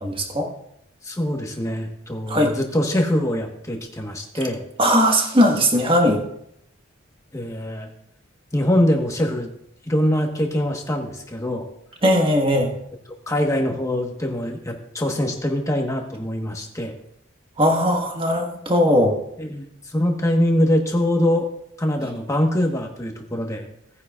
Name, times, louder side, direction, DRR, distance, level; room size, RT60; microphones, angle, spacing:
voice 1, 0.0-0.5 2.3-2.5 4.8-6.2 12.0-12.7 17.6-19.2, equal, 25° right, 1 dB, 1.5 m, -18 dB
voice 2, 1.0-4.6 7.3-7.9 8.5-9.5 9.9-11.6 13.3-16.9 19.4-21.5 21.8-23.7, left 1 dB, 15° left, 2 dB, 1.3 m, -23 dB
18.0 x 9.7 x 2.4 m, 0.75 s
head